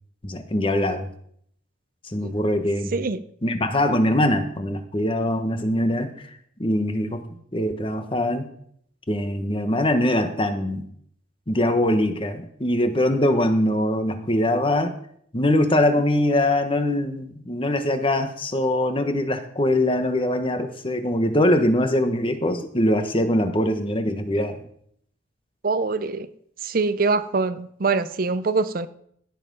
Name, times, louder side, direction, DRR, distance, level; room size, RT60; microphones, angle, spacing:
voice 1, 0.2-1.1 2.0-2.9 3.4-6.3 6.6-7.2 7.5-8.5 9.1-10.9 11.5-15.0 15.3-24.6, left 1 dB, 25° left, 8 dB, 1.2 m, -22 dB
voice 2, 25.6-26.3 26.6-28.9, right 4 dB, 45° right, 13 dB, 0.6 m, -24 dB
16.5 x 7.4 x 5.4 m, 0.66 s
head